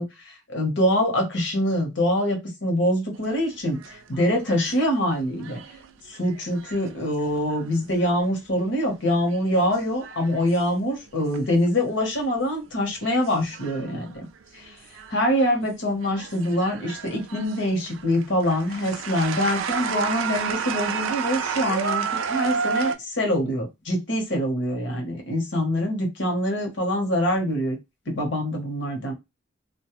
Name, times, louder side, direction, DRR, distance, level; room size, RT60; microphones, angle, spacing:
voice 1, 0.0-5.6 6.1-14.3 14.5-14.8 15.1-27.8 28.1-29.1, equal, 60° left, 1 dB, 0.9 m, -24 dB
sound 1, 3.2-8.5 8.9-11.7 12.0-12.4 13.0-15.7 16.0-22.9, right 6 dB, 85° right, 0.4 m, -32 dB
2.2 x 2.1 x 2.8 m, 0.22 s
head